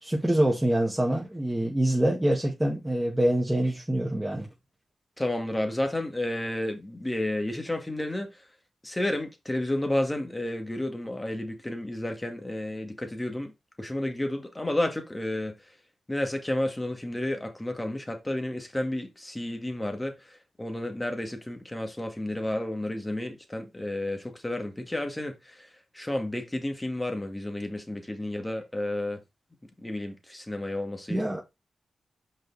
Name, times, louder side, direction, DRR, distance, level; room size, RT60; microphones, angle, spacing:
voice 1, 0.0-4.5 31.1-31.4, right 1 dB, 10° right, 1.7 m, -25 dB
voice 2, 5.2-8.3 8.8-13.5 13.8-15.5 16.1-25.7 25.9-29.2 29.8-31.2, left 1 dB, 15° left, 2.0 m, -31 dB
6.2 x 5.1 x 4.1 m
cardioid pair, 55°, 0 cm